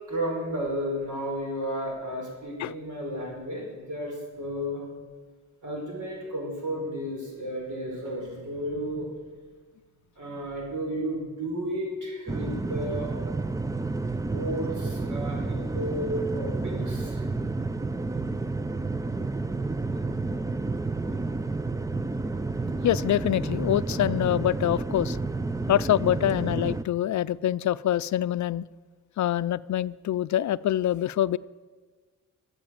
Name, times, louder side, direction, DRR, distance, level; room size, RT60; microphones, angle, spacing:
voice 1, 0.1-4.8 5.6-9.1 10.2-13.1 14.3-17.3, equal, 70° right, -1 dB, 5.3 m, -33 dB
sound 1, 12.3-26.8, right 3 dB, 10° right, 0.4 m, -30 dB
voice 2, 22.8-25.2 25.7-28.7 29.2-31.4, left 12 dB, 65° left, 16 dB, 0.5 m, -25 dB
15.0 x 7.9 x 9.1 m, 1.5 s
wide cardioid pair, 135°, 31 cm